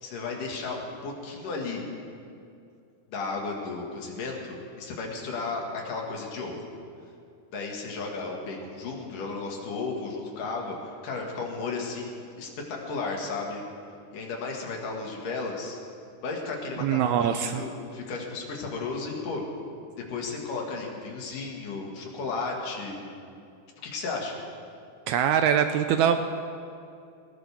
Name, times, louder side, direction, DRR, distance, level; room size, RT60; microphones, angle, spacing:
voice 1, 0.0-1.8 3.1-6.7 7.5-13.6 14.1-15.8 16.2-19.5 20.0-23.0 23.8-24.4, left 3 dB, 75° left, 0 dB, 3.5 m, -34 dB
voice 2, 16.8-17.6 25.1-26.2, right 8 dB, 80° right, 8 dB, 1.8 m, -23 dB
19.5 x 19.0 x 3.6 m, 2.5 s
omnidirectional pair, 3.8 m